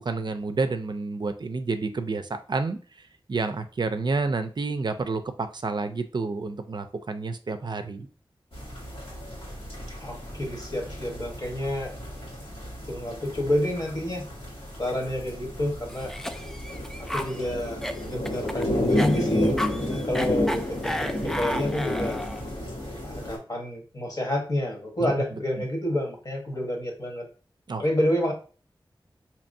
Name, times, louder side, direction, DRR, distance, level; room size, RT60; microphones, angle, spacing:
voice 1, 0.0-3.0 3.3-8.1 25.0-25.1 25.6-25.7 27.7-27.8, right 3 dB, 55° right, 8 dB, 0.4 m, -29 dB
sound 1, 8.5-23.4, left 1 dB, 90° left, 1.6 m, -32 dB
voice 2, 10.0-11.9 12.9-14.3 14.8-16.1 17.0-19.6 19.9-22.2 23.0-27.3 27.8-28.3, left 1 dB, 45° left, 1 dB, 1.2 m, -29 dB
Cough, 15.9-22.5, equal, 5° left, 0.4 m, -33 dB
4.4 x 2.9 x 2.6 m, 0.38 s
wide cardioid pair, 65°, 9 cm